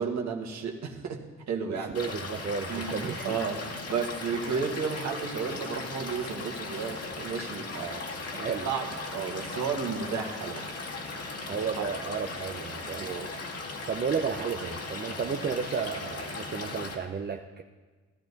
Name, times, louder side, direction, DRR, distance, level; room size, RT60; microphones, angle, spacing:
voice 1, 0.0-2.0 2.7-8.0 8.6-10.6 11.8-11.9 13.0-13.3, right 5 dB, 65° right, 2 dB, 1.8 m, -33 dB
voice 2, 1.7-3.4 8.3-8.7 11.5-13.1 13.9-17.6, right 6 dB, 35° right, 4 dB, 0.7 m, -33 dB
Stream / Liquid, 1.9-16.9, left 3 dB, 50° left, 2.0 m, -38 dB
16.5 x 12.5 x 4.1 m, 1.3 s
cardioid pair, 90°, 30 cm